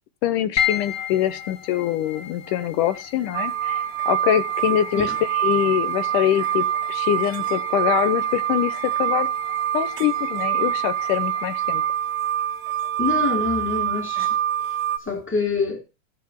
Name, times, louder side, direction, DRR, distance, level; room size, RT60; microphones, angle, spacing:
voice 1, 0.2-5.1 5.4-9.3 9.7-11.8, left 12 dB, 85° left, 2.5 m, -24 dB
sound 1, 0.6-15.0, left 8 dB, 60° left, 0.6 m, -35 dB
sound 2, 3.3-15.0, right 11 dB, 75° right, 2.2 m, -25 dB
voice 2, 13.0-14.4 15.1-15.8, left 4 dB, 5° left, 2.8 m, -25 dB
15.0 x 5.9 x 6.4 m
omnidirectional pair, 3.6 m